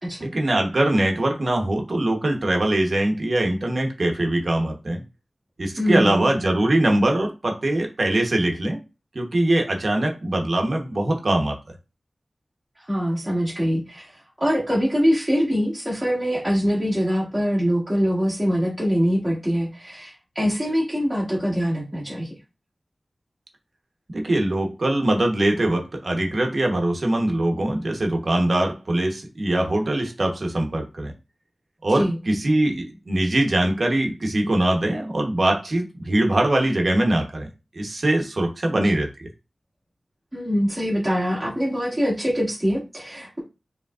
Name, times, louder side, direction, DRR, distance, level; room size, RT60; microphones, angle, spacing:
voice 1, 0.2-5.0 5.6-8.8 9.1-11.6 24.1-31.1 31.8-37.5 37.7-39.3, right 1 dB, 55° right, 2 dB, 1.0 m, -22 dB
voice 2, 5.8-6.3 12.8-22.3 31.9-32.2 38.7-38.9 40.3-43.4, equal, 10° right, -7 dB, 1.4 m, -23 dB
5.0 x 3.2 x 2.4 m, 0.28 s
wide cardioid pair, 85°, 0 cm